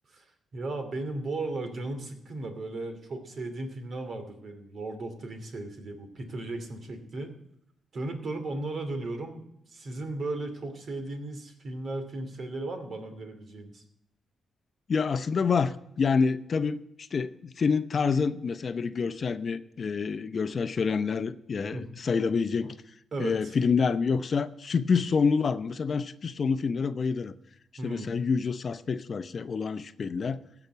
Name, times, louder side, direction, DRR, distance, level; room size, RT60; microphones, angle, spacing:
voice 1, 0.5-7.3 7.9-13.8 21.7-21.8 23.1-23.5 27.8-28.1, right 2 dB, 55° right, 7 dB, 2.6 m, -36 dB
voice 2, 14.9-16.8 17.1-22.8 23.2-27.3 27.8-30.5, left 5 dB, 50° left, 12 dB, 0.7 m, -27 dB
16.0 x 5.9 x 8.2 m, 0.81 s
cardioid pair, 70°, 0 cm